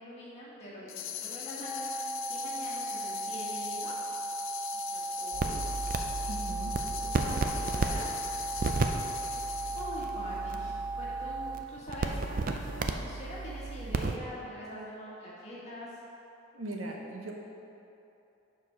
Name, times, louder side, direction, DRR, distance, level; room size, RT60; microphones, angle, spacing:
voice 1, 0.0-4.2 4.7-5.6 7.0-8.1 9.7-16.0, equal, 30° left, -7 dB, 1.6 m, -44 dB
sound 1, 0.9-10.0, left 10 dB, 70° left, 0.5 m, -40 dB
sound 2, 1.6-11.6, right 3 dB, 5° right, 1.0 m, -37 dB
sound 3, 5.3-14.2, right 3 dB, 40° right, 0.4 m, -34 dB
voice 2, 6.3-6.8 16.5-17.3, right 1 dB, 75° right, 0 dB, 0.9 m, -39 dB
7.3 x 4.4 x 5.8 m, 2.9 s
head